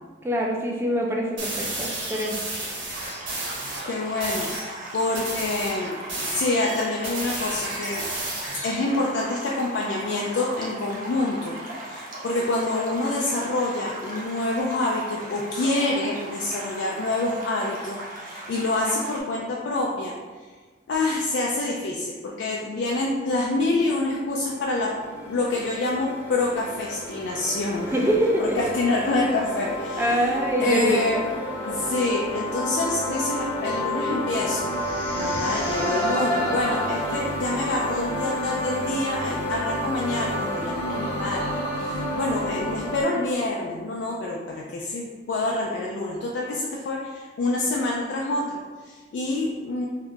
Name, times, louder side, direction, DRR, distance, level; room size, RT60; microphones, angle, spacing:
voice 1, 0.2-2.4 27.9-28.7 30.0-31.2, equal, 15° right, 0 dB, 0.3 m, -24 dB
sound 1, 1.4-3.9 4.2-4.7 5.1-8.8, right 2 dB, 85° right, 0.9 m, -32 dB
sound 2, 2.9-19.2, right 1 dB, 45° right, 0.7 m, -38 dB
voice 2, 3.8-8.0 8.6-20.1 20.9-24.9 25.3-28.0 28.4-31.2 31.7-34.7 35.2-49.9, left 2 dB, 70° left, -2 dB, 0.3 m, -27 dB
sound 3, 23.7-43.0, equal, 15° left, 0.8 m, -30 dB
2.7 x 2.3 x 3.5 m, 1.4 s
head